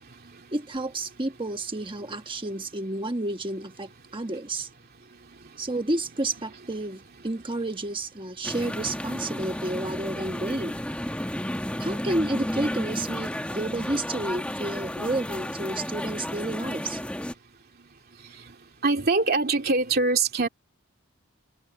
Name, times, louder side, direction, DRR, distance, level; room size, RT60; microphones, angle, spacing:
voice 1, 0.5-4.7 5.6-10.8 11.8-17.0, right 2 dB, 25° right, 1.4 m, -31 dB
sound 1, 8.4-17.3, left 1 dB, 5° left, 1.6 m, -32 dB
voice 2, 18.8-20.5, right 3 dB, 45° right, 2.6 m, -23 dB
head